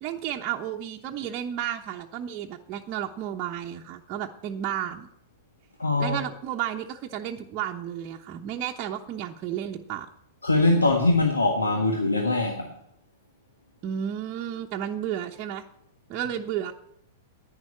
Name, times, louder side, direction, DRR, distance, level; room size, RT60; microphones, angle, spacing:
voice 1, 0.0-5.1 6.0-10.1 13.8-15.6 16.1-16.7, right 10 dB, 35° right, 1 dB, 1.0 m, -32 dB
voice 2, 5.8-6.2 10.4-12.7, left 2 dB, 80° left, 3 dB, 1.6 m, -22 dB
11.0 x 9.8 x 8.4 m, 0.73 s
figure-of-eight pair, 100°, 0 cm